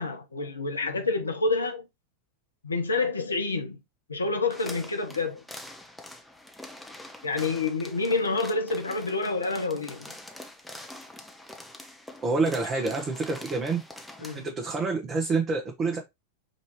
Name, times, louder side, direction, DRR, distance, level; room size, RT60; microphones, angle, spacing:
voice 1, 0.0-1.9 2.6-3.8 4.1-5.4 7.2-10.1 14.2-14.5, left 3 dB, 75° left, 0.8 m, -28 dB
sound 1, 4.5-14.5, left 1 dB, ahead, 0.7 m, -45 dB
voice 2, 12.2-13.8 14.3-16.0, right 3 dB, 25° right, 0.9 m, -27 dB
5.2 x 2.7 x 3.1 m
figure-of-eight pair, 90°, 0 cm